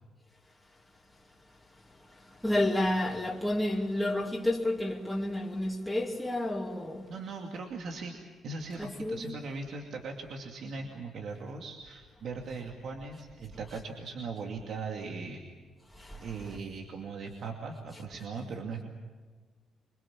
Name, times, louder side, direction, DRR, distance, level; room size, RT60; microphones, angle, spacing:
voice 1, 2.1-7.1 8.8-9.2 15.9-16.6, left 1 dB, 5° left, 2.8 m, -31 dB
voice 2, 7.1-8.2 8.4-15.4 16.2-18.8, right 4 dB, 65° right, 2.5 m, -39 dB
26.5 x 22.5 x 7.4 m
cardioid pair, 90°, 0 cm